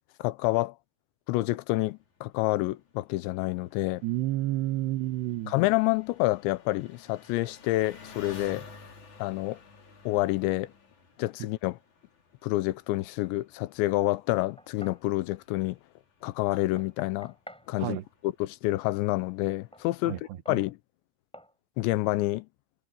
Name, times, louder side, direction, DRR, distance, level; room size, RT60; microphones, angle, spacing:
voice 1, 0.2-0.7 1.3-4.0 5.5-8.6 9.2-9.6 10.1-10.7 11.2-11.8 12.4-15.8 16.2-17.3 17.7-18.0 18.2-20.2 20.5-20.8 21.8-22.5, left 19 dB, 80° left, 2.9 m, -28 dB
Engine, 1.9-20.1, left 4 dB, 40° left, 5.3 m, -54 dB
voice 2, 4.0-5.5 17.8-18.0 20.0-20.2 20.5-20.6, right 15 dB, 75° right, 2.8 m, -30 dB
Knock, 14.1-15.1 16.5-17.7 19.7-19.9 20.5-20.7 21.3-21.6, equal, ahead, 4.3 m, -50 dB
omnidirectional pair, 5.5 m